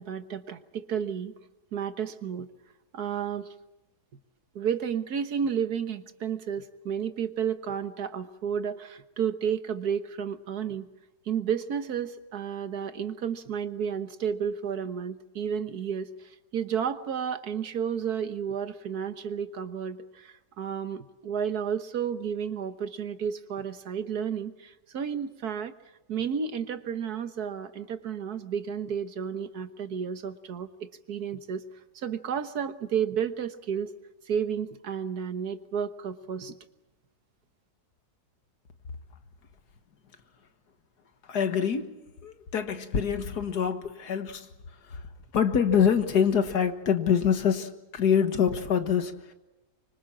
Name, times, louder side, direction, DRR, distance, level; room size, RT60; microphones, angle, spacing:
voice 1, 0.0-1.3 1.7-2.5 2.9-3.5 4.6-10.9 11.3-25.7 26.1-31.6 32.0-33.9 34.3-36.5, right 7 dB, 70° right, 1.7 m, -32 dB
voice 2, 41.3-41.9 42.2-44.5 44.9-45.0 45.3-49.3, left 7 dB, 75° left, 2.1 m, -25 dB
25.5 x 25.0 x 7.3 m
omnidirectional pair, 1.7 m